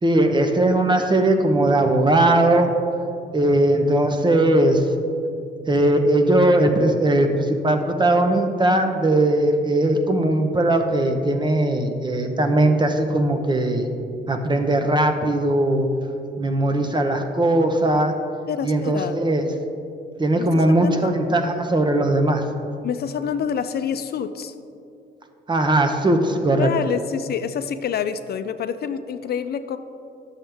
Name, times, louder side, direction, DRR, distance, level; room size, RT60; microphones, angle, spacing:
voice 1, 0.0-2.7 3.3-4.8 5.7-13.9 14.3-15.9 16.4-18.1 18.6-19.5 20.2-22.4 25.5-26.7, right 1 dB, 25° right, 6 dB, 0.8 m, -19 dB
voice 2, 18.5-19.2 20.4-21.1 22.8-24.5 26.6-29.8, left 8 dB, 55° left, 10 dB, 0.4 m, -27 dB
10.5 x 7.2 x 3.4 m, 2.6 s
cardioid pair, 90°, 20 cm